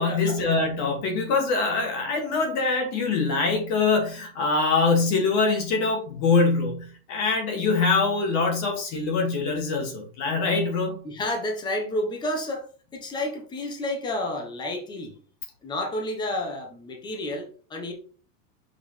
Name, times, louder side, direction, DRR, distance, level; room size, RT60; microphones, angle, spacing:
voice 1, 0.0-11.0, left 4 dB, 35° left, 2 dB, 2.1 m, -24 dB
voice 2, 11.0-12.7 12.9-15.1 15.6-17.9, left 1 dB, 10° left, 2 dB, 1.0 m, -30 dB
6.6 x 5.3 x 3.2 m, 0.40 s
supercardioid pair, 165°, 48 cm